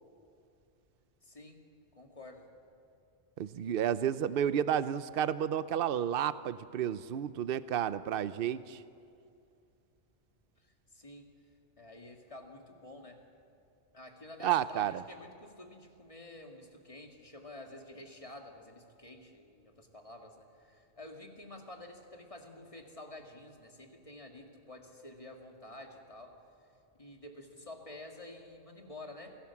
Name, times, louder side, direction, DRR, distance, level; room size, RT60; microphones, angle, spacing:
voice 1, 1.2-1.6 1.9-2.5 10.6-11.3 11.8-13.2 13.9-26.4 27.0-29.4, left 1 dB, 30° left, 2 dB, 2.3 m, -50 dB
voice 2, 3.4-8.8 14.4-15.0, right 10 dB, 60° right, 14 dB, 0.8 m, -31 dB
28.0 x 17.0 x 7.2 m, 2.5 s
omnidirectional pair, 1.2 m